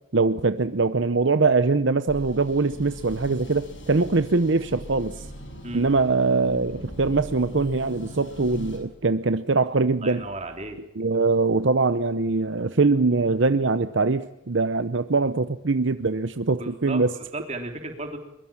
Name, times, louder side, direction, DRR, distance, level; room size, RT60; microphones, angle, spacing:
voice 1, 0.1-5.3 5.7-10.2 11.0-17.1, right 3 dB, 60° right, 12 dB, 0.7 m, -22 dB
sound 1, 2.1-8.8, equal, 60° left, 6.9 m, -40 dB
voice 2, 10.0-10.8 16.6-18.2, right 2 dB, 30° right, 4 dB, 3.5 m, -34 dB
23.0 x 22.5 x 7.3 m, 0.91 s
head